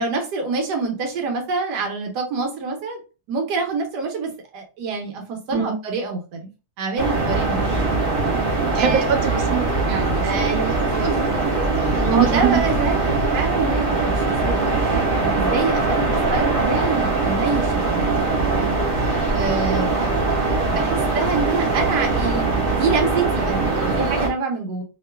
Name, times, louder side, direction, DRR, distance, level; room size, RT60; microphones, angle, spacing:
voice 1, 0.0-3.0 3.3-6.5 6.8-7.8 8.7-9.1 10.2-14.7 15.2-18.1 19.3-19.9 20.7-24.8, right 4 dB, 80° right, 1.3 m, -26 dB
sound 1, 7.0-24.3, right 3 dB, 40° right, 0.9 m, -21 dB
voice 2, 8.7-10.3 11.9-12.6, right 8 dB, 65° right, 1.0 m, -22 dB
2.9 x 2.4 x 2.2 m
omnidirectional pair, 1.8 m